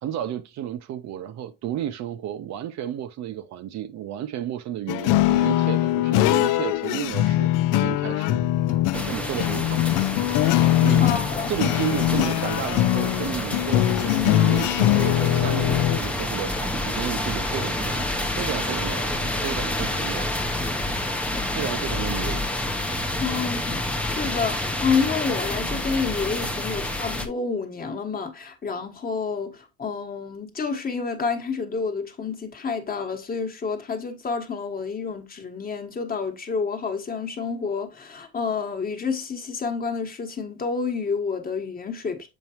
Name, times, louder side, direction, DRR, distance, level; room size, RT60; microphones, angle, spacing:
voice 1, 0.0-8.4 8.9-9.8 10.8-11.2 11.5-18.1 18.4-20.3 21.5-22.4 23.3-23.6, right 11 dB, 55° right, 0.7 m, -32 dB
sound 1, 4.9-16.0, left 14 dB, 70° left, 0.5 m, -22 dB
sound 2, 8.9-27.3, left 1 dB, 5° left, 0.7 m, -28 dB
voice 2, 11.0-11.5 23.2-42.3, left 5 dB, 25° left, 1.3 m, -29 dB
7.3 x 4.5 x 2.9 m
cardioid pair, 125°, 33 cm